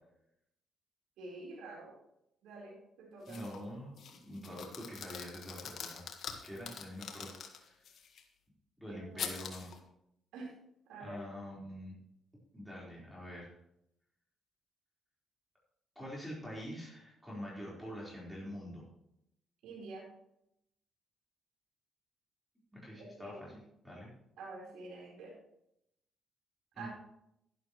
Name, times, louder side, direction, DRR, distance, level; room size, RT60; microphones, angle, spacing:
voice 1, 1.2-1.9 2.4-3.4 8.8-9.3 10.3-10.5 10.9-11.2 19.6-20.1 23.0-23.5 24.4-25.3 26.8-26.9, right 3 dB, 85° right, -3 dB, 4.2 m, -47 dB
sound 1, 3.3-3.6 4.0-8.2 9.2-9.8, left 7 dB, 65° left, 1.6 m, -44 dB
voice 2, 3.3-6.0 6.4-7.3 7.6-7.7 8.8-9.7 11.0-12.0 12.5-13.5 16.0-18.8 22.7-24.1 26.7-26.9, equal, 5° right, -5 dB, 4.4 m, -45 dB
12.0 x 11.0 x 3.2 m, 0.78 s
cardioid pair, 90°, 0 cm